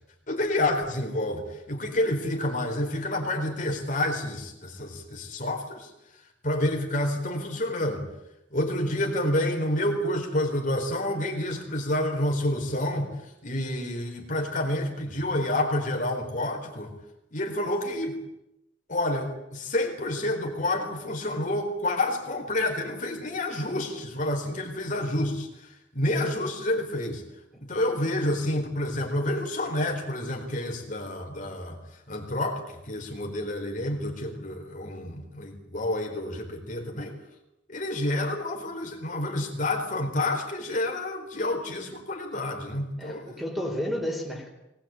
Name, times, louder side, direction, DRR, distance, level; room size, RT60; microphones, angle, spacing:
voice 1, 0.3-5.9 6.4-8.0 8.5-13.1 13.4-16.9 17.3-18.2 18.9-27.2 27.6-31.8 32.1-37.1 37.7-43.3, left 1 dB, 40° left, 2 dB, 4.1 m, -29 dB
voice 2, 43.0-44.5, equal, ahead, 1 dB, 4.3 m, -31 dB
22.5 x 20.0 x 8.9 m, 0.88 s
head